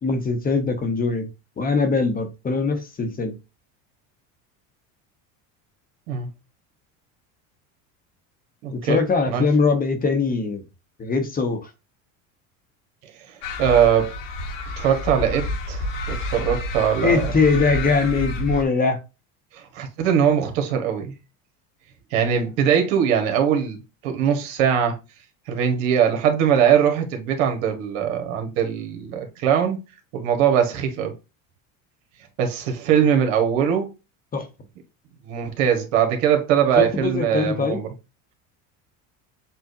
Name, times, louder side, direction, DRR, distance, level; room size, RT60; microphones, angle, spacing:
voice 1, 0.0-1.3 1.6-3.4 8.7-10.6 11.0-11.7 17.0-19.0 34.3-34.5 36.8-37.8, left 4 dB, 25° left, 0.9 m, -22 dB
voice 2, 8.6-9.0 9.3-9.4 13.3-14.1 14.8-17.3 19.5-21.1 22.1-25.0 25.5-29.8 30.1-31.1 32.4-33.9 35.2-37.9, right 8 dB, 75° right, 1.5 m, -21 dB
sound 1, 13.4-18.6, left 1 dB, 75° left, 1.3 m, -29 dB
7.2 x 2.4 x 2.6 m
supercardioid pair, 120°, 38 cm